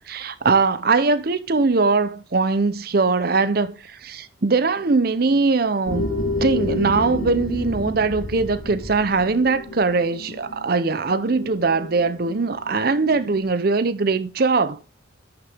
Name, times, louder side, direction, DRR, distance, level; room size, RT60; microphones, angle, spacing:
voice 1, 0.1-6.1 6.4-14.8, right 4 dB, 50° right, 0.6 m, -21 dB
sound 1, 5.8-13.4, left 1 dB, 80° left, 3.5 m, -31 dB
11.0 x 6.6 x 3.4 m
head